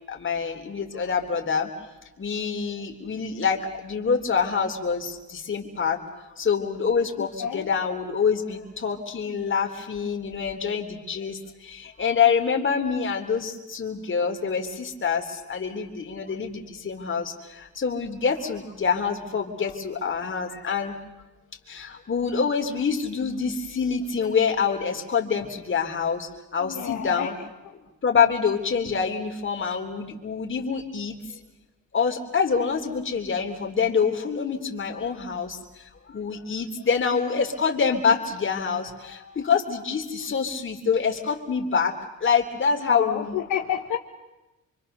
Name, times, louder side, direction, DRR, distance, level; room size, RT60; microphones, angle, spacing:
voice 1, 0.1-1.7 2.2-6.0 6.4-21.0 21.7-27.3 28.0-31.4 31.9-35.6 36.1-41.9 42.2-43.4, left 6 dB, 40° left, 3 dB, 3.4 m, -26 dB
voice 2, 26.6-27.3 42.9-44.0, left 10 dB, 80° left, 4 dB, 1.4 m, -29 dB
26.5 x 24.5 x 6.8 m, 1.1 s
cardioid pair, 90°, 30 cm